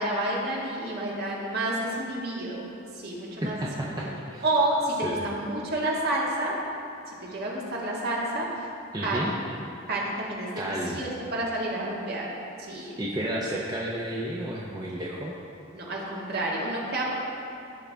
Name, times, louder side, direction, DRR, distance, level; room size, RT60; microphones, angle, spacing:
voice 1, 0.0-2.6 3.0-3.6 3.9-4.1 4.4-6.5 7.2-8.5 9.0-9.4 9.9-12.3 12.6-13.0 15.7-17.1, right 1 dB, 55° right, -4 dB, 1.8 m, -29 dB
voice 2, 3.4-4.4 5.0-5.3 8.9-9.3 10.5-11.0 12.8-15.3, right 1 dB, 20° right, -4 dB, 0.7 m, -32 dB
15.5 x 5.7 x 3.5 m, 2.7 s
head